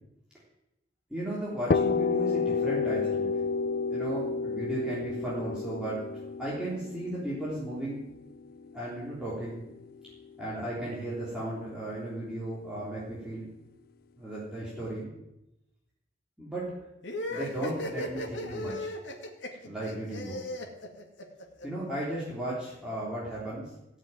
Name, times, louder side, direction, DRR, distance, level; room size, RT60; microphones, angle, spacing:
voice 1, 1.1-3.3 3.9-6.0 6.4-8.1 8.7-9.7 10.4-13.5 14.1-15.1 16.4-16.7 17.3-18.9 19.6-20.4 21.6-23.7, right 1 dB, 5° right, -8 dB, 3.5 m, -35 dB
sound 1, 1.7-9.4, left 5 dB, 55° left, 0.5 m, -30 dB
sound 2, 17.0-21.7, left 1 dB, 85° left, 2.2 m, -36 dB
16.5 x 6.8 x 9.2 m, 0.90 s
head